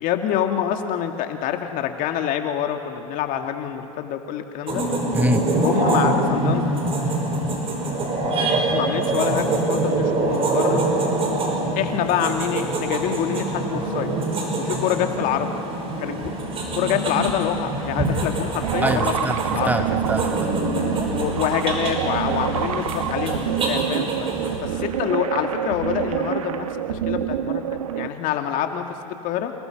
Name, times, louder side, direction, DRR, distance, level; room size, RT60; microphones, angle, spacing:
voice 1, 0.0-4.9 5.6-6.7 8.7-10.8 11.8-14.1 14.6-15.6 16.0-16.3 16.7-19.7 20.5-24.3 24.6-29.5, left 10 dB, 50° left, 5 dB, 2.1 m, -26 dB
sound 1, 4.7-24.6, right 2 dB, 35° right, 5.6 m, -25 dB
voice 2, 5.1-5.4 18.8-20.5, right 1 dB, 10° right, 7 dB, 1.4 m, -24 dB
sound 2, 18.6-28.1, right 9 dB, 80° right, 1.2 m, -27 dB
28.5 x 19.5 x 5.9 m, 2.7 s
hypercardioid pair, 95°, 17 cm